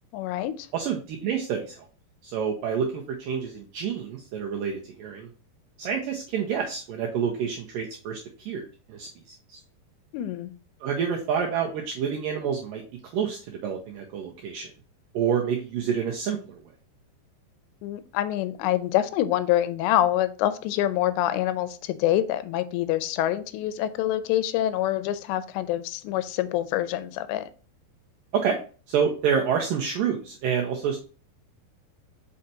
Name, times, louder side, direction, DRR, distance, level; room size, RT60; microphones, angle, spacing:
voice 1, 0.1-0.7 10.1-10.5 17.8-27.5, left 13 dB, 90° left, 12 dB, 2.8 m, -26 dB
voice 2, 0.7-1.9 2.2-5.3 5.8-8.2 8.5-9.1 9.5-9.6 10.8-12.8 13.1-14.7 15.1-16.6 28.3-28.6 28.9-31.0, right 7 dB, 80° right, 1 dB, 2.0 m, -28 dB
6.3 x 5.6 x 2.8 m, 0.37 s
omnidirectional pair, 4.9 m